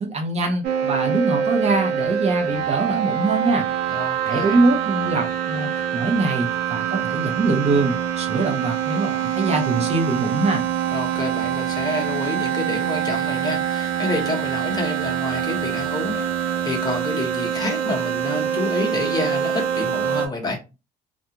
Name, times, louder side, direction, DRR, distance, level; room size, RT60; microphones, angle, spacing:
voice 1, 0.1-3.7 4.2-10.6, right 3 dB, 40° right, 0.8 m, -23 dB
sound 1, 0.6-20.3, right 9 dB, 85° right, 0.6 m, -25 dB
voice 2, 3.9-4.6 10.9-20.6, left 2 dB, 25° left, 0.9 m, -28 dB
2.4 x 2.3 x 2.8 m
cardioid pair, 110°, 17 cm